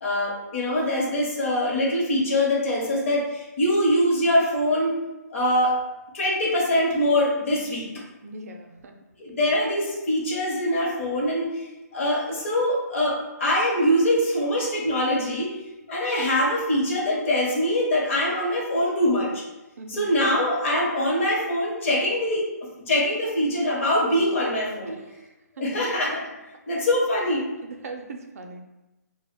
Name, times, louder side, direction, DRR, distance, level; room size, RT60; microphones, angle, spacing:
voice 1, 0.0-5.0 5.3-5.8 6.1-7.9 9.2-11.6 11.9-15.5 15.9-19.4 19.9-22.4 22.9-25.0 25.6-26.3 26.7-27.5, left 1 dB, 45° left, -4 dB, 0.8 m, -23 dB
voice 2, 8.2-8.9 19.8-20.2 25.0-25.2 27.6-28.6, right 2 dB, 55° right, 4 dB, 0.4 m, -40 dB
2.1 x 2.0 x 3.6 m, 1.0 s
hypercardioid pair, 155°, 9 cm